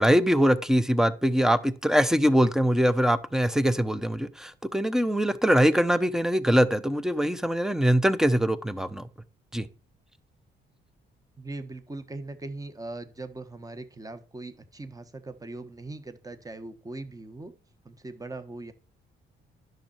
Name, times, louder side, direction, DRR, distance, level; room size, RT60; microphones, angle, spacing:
voice 1, 0.0-9.1 9.5-9.7, equal, ahead, 0.8 m, -23 dB
voice 2, 11.4-17.5 17.8-18.7, right 2 dB, 15° right, 1.4 m, -40 dB
10.5 x 6.6 x 4.4 m
cardioid pair, 90°, 20 cm